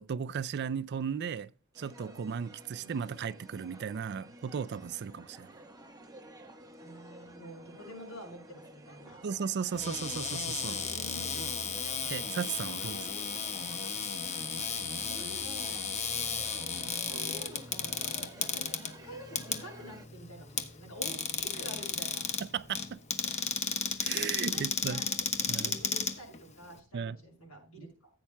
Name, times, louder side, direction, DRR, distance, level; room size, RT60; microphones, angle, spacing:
voice 1, 0.0-1.5 1.8-5.5 9.2-10.8 12.1-13.0 22.5-23.0 24.0-25.0 25.5-25.7 26.9-27.2, right 7 dB, 50° right, 0.4 m, -35 dB
sound 1, 1.7-20.1, right 1 dB, 15° right, 1.2 m, -52 dB
voice 2, 6.8-9.2 10.7-11.6 12.7-13.6 15.0-15.8 16.9-22.2 24.5-25.2 25.5-28.1, equal, 85° left, 6.2 m, -48 dB
Cupboard open or close, 9.7-26.8, left 6 dB, 30° left, 0.9 m, -34 dB
15.0 x 8.5 x 2.2 m
head